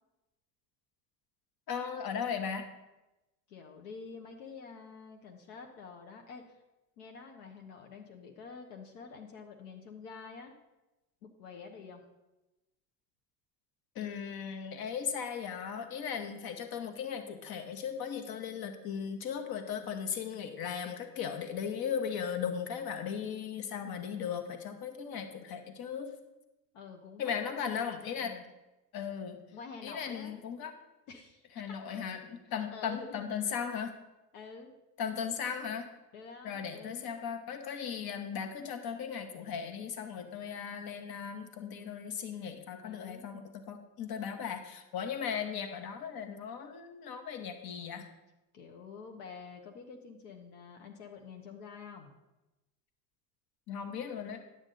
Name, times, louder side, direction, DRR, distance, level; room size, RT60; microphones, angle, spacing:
voice 1, 1.7-2.7 13.9-26.1 27.2-28.3 28.9-29.4 29.8-30.7 31.6-33.9 35.0-35.9 36.4-48.0 53.7-54.4, left 7 dB, 50° left, 7 dB, 1.3 m, -37 dB
voice 2, 3.5-6.6 7.0-10.5 11.2-12.0 26.7-28.4 29.5-30.4 31.1-31.8 32.4-33.3 34.3-34.8 36.1-37.1 42.8-43.3 48.5-52.2, left 5 dB, 70° left, 3 dB, 1.1 m, -48 dB
9.8 x 8.1 x 3.9 m, 1.0 s
hypercardioid pair, 75°, 48 cm